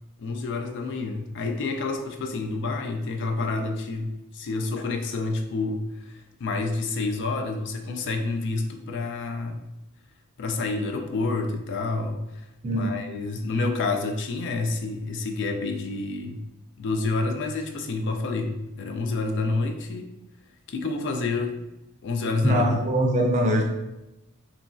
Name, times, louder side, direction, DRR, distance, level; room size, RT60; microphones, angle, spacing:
voice 1, 0.2-9.6 10.4-12.4 12.7-16.4 16.8-20.1 20.7-21.7 22.0-22.7, left 3 dB, 55° left, 5 dB, 0.4 m, -28 dB
voice 2, 12.6-12.9 22.4-23.6, equal, 30° right, 1 dB, 0.4 m, -22 dB
3.0 x 2.6 x 2.2 m, 0.95 s
head